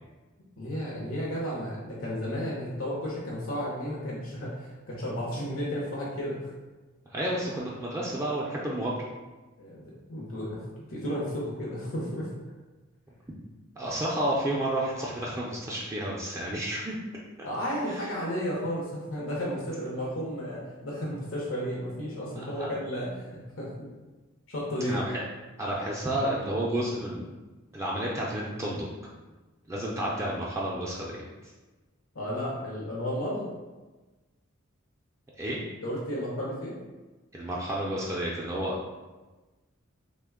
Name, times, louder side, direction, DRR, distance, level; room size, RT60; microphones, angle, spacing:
voice 1, 0.6-6.5 9.6-12.3 17.4-23.9 24.5-25.0 32.1-33.5 35.8-36.8, equal, 80° left, -5 dB, 0.7 m, -33 dB
voice 2, 7.1-9.0 13.8-16.9 17.9-18.1 22.4-22.7 24.9-25.2 25.6-27.3 27.7-28.9 29.7-31.5 35.4-35.6 37.3-38.8, right 1 dB, 15° right, -5 dB, 0.3 m, -31 dB
3.2 x 2.1 x 3.5 m, 1.2 s
head